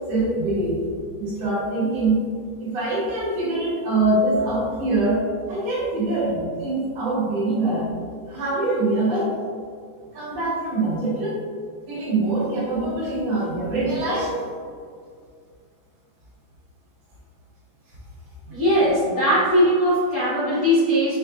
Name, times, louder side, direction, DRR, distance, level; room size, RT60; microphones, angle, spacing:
voice 1, 0.1-0.8 1.2-2.3 2.6-7.9 8.3-9.3 10.1-11.4 11.9-14.4 18.5-18.6, right 2 dB, 65° right, -7 dB, 2.0 m, -24 dB
voice 2, 18.5-21.2, equal, 90° left, -11 dB, 0.7 m, -19 dB
6.7 x 3.2 x 2.4 m, 2.2 s
omnidirectional pair, 3.6 m